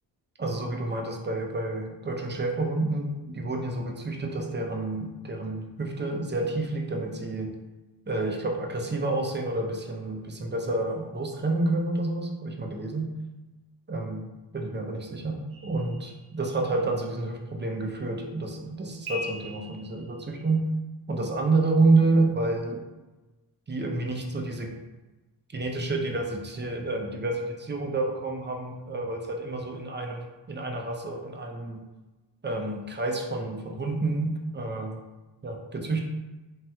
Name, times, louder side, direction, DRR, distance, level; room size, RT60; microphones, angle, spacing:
voice 1, 0.4-7.5 8.1-13.1 13.9-14.2 14.5-20.6 21.1-22.8 23.7-24.7 25.5-31.8 32.4-35.0 35.4-36.0, right 2 dB, 25° right, 2 dB, 0.5 m, -29 dB
sound 1, 15.5-16.8 19.1-20.5, left 2 dB, 75° right, 0.7 m, -41 dB
3.1 x 2.8 x 2.3 m, 1.1 s
cardioid pair, 45°, 47 cm